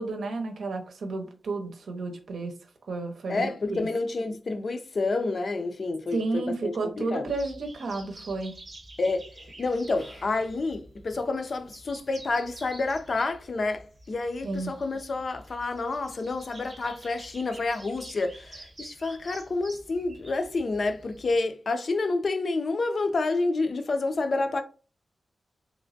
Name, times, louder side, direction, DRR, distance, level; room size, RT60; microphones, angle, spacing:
voice 1, 0.0-2.5 2.9-3.9 6.1-8.6 14.4-14.7, right 3 dB, 85° right, 0.8 m, -32 dB
voice 2, 3.3-7.3 9.0-9.3 9.6-24.6, left 3 dB, 45° left, 0.4 m, -29 dB
sound 1, 7.3-21.4, right 1 dB, 30° right, 0.7 m, -49 dB
3.3 x 3.1 x 2.6 m
wide cardioid pair, 175°, 0 cm